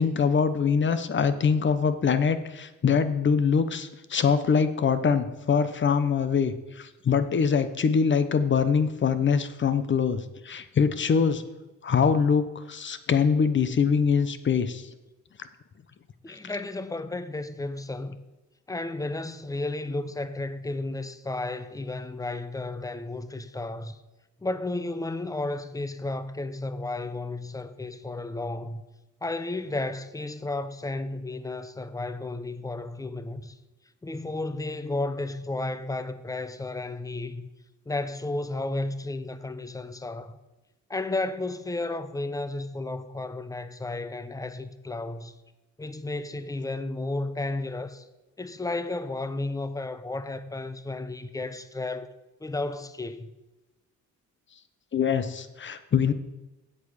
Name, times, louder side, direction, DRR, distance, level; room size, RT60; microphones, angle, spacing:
voice 1, 0.0-11.4 11.8-14.8 54.9-56.1, left 6 dB, 40° left, 0.9 m, -24 dB
voice 2, 16.2-18.2 18.7-24.0 24.4-28.8 29.2-33.6 34.0-37.5 37.9-40.4 40.9-45.4 45.8-48.1 48.4-52.1 52.4-53.3, left 2 dB, 10° left, 0.7 m, -33 dB
8.0 x 7.6 x 6.5 m
cardioid pair, 90°, 30 cm